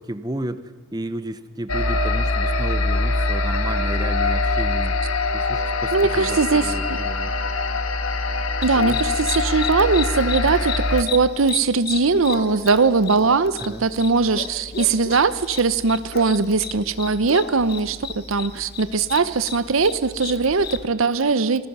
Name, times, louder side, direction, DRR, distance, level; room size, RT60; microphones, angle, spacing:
voice 1, 0.0-5.0 5.3-7.4 8.7-9.0 13.6-13.8, right 1 dB, 20° right, 12 dB, 0.8 m, -32 dB
sound 1, 1.7-11.0, left 3 dB, 85° left, 1.6 m, -23 dB
voice 2, 5.9-6.8 8.6-21.7, right 4 dB, 85° right, 15 dB, 0.8 m, -20 dB
sound 2, 8.6-20.9, left 6 dB, 50° left, 1.0 m, -34 dB
26.5 x 19.5 x 5.5 m, 1.4 s
head